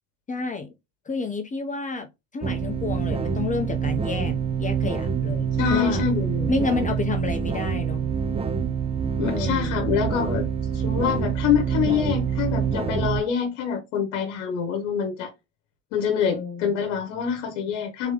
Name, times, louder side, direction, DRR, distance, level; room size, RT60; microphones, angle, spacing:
voice 1, 0.3-0.7 1.1-2.1 2.3-6.0 6.5-8.1 9.3-9.9 16.2-16.8, left 4 dB, 20° left, 0.7 m, -30 dB
sound 1, 2.4-13.2, right 7 dB, 15° right, 0.5 m, -26 dB
voice 2, 5.6-6.5 9.2-10.5 10.7-15.3 15.9-18.1, left 7 dB, 80° left, 1.0 m, -25 dB
3.7 x 3.4 x 3.3 m
supercardioid pair, 85°, 36 cm